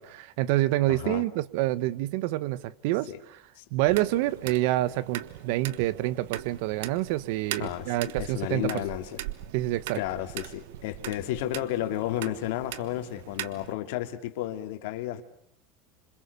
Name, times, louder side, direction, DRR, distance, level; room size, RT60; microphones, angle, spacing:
voice 1, 0.0-3.4 3.7-8.8 9.5-10.0, right 16 dB, 65° right, 1.1 m, -27 dB
voice 2, 0.9-1.2 3.1-3.2 3.6-3.7 7.6-9.2 9.9-15.2, left 13 dB, 70° left, 2.8 m, -32 dB
sound 1, 3.8-13.7, right 13 dB, 85° right, 1.3 m, -40 dB
27.5 x 26.5 x 6.9 m
supercardioid pair, 160°, 0 cm